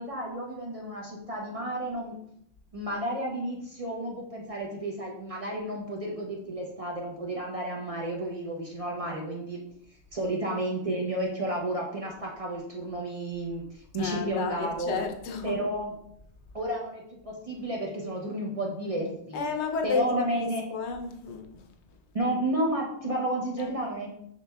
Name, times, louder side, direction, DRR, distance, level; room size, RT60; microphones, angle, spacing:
voice 1, 0.0-2.2 2.7-9.6 10.1-14.9 15.4-15.9 16.5-19.4 19.8-20.6 22.1-24.1, right 1 dB, 40° right, -2 dB, 0.6 m, -32 dB
voice 2, 14.0-15.7 19.3-21.7 23.5-23.9, left 5 dB, 80° left, 3 dB, 0.9 m, -32 dB
4.9 x 3.3 x 2.2 m, 0.72 s
omnidirectional pair, 1.1 m